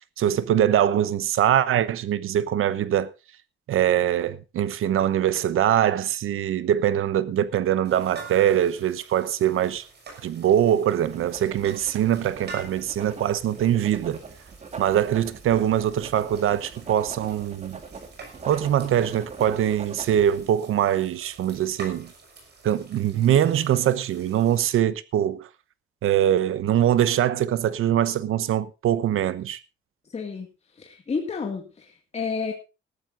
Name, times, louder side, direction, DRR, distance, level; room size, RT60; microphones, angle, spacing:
voice 1, 0.2-3.1 3.7-9.8 10.2-14.2 14.8-17.8 18.5-22.1 22.6-25.5 26.0-29.6, right 10 dB, 85° right, 1.0 m, -23 dB
sound 1, 7.8-24.7, right 4 dB, 55° right, 6.6 m, -47 dB
Writing, 11.1-20.5, right 4 dB, 35° right, 1.9 m, -42 dB
voice 2, 30.1-30.5 30.8-32.5, left 5 dB, 30° left, 2.1 m, -31 dB
19.5 x 14.0 x 2.6 m
wide cardioid pair, 155°, 21 cm